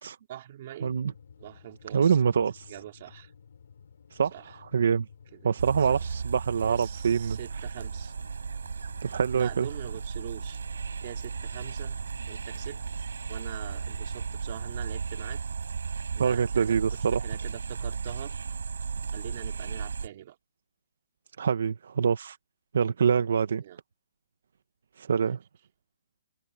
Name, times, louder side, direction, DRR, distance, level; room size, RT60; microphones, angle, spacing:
voice 1, 0.3-1.0 1.4-2.2 2.7-3.3 4.3-4.5 5.3-5.4 5.9-6.0 6.6-8.1 9.3-10.6 11.0-12.0 12.3-15.4 16.2-18.3 19.1-20.4 23.6-23.8 25.2-25.4, right 12 dB, 30° right, 2.5 m, -43 dB
sound 1, 0.8-15.0, left 6 dB, 60° left, 3.9 m, -54 dB
voice 2, 1.9-2.7 4.1-5.1 5.4-7.6 9.0-9.7 16.2-17.3 21.4-22.4 22.7-23.6 25.0-25.4, right 6 dB, 55° right, 1.0 m, -25 dB
sound 2, 5.6-20.1, right 5 dB, 90° right, 5.2 m, -35 dB
hypercardioid pair, 175°, 0 cm